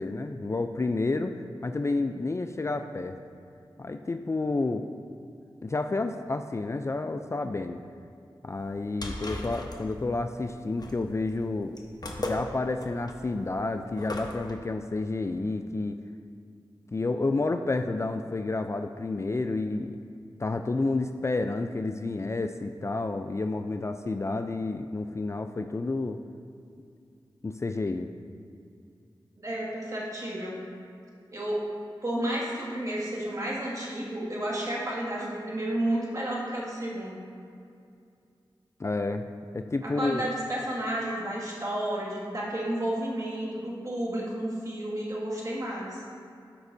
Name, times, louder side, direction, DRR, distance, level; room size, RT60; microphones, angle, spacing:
voice 1, 0.0-1.3 1.6-3.2 3.8-4.9 5.6-7.8 8.4-11.8 12.2-16.0 16.9-20.0 20.4-26.2 27.4-28.1 38.8-39.3 39.5-40.2, left 3 dB, 30° left, 7 dB, 0.3 m, -30 dB
sound 1, 8.6-14.5, left 1 dB, 50° left, 0.9 m, -38 dB
voice 2, 29.4-30.6 31.3-31.6 32.0-37.2 39.8-46.0, right 1 dB, 40° right, -5 dB, 1.9 m, -31 dB
13.0 x 5.2 x 2.6 m, 2.4 s
cardioid pair, 45°, 9 cm